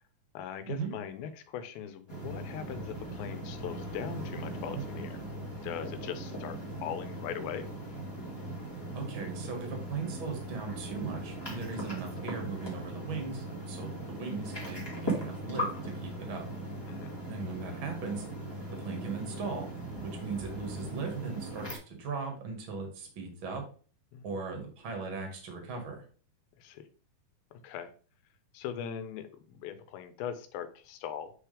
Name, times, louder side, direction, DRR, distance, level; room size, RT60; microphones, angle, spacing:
voice 1, 0.3-5.2 5.6-7.7 16.9-17.2 24.1-24.4 26.6-26.8 27.5-27.9 28.5-31.3, left 9 dB, 85° left, 10 dB, 2.7 m, -40 dB
sound 1, 2.1-21.8, right 1 dB, 10° left, 1.4 m, -39 dB
voice 2, 8.9-16.5 17.3-18.3 18.8-19.7 20.0-23.6 24.2-26.0, right 4 dB, 45° right, 3 dB, 2.0 m, -38 dB
8.3 x 4.8 x 3.4 m, 0.40 s
omnidirectional pair, 4.2 m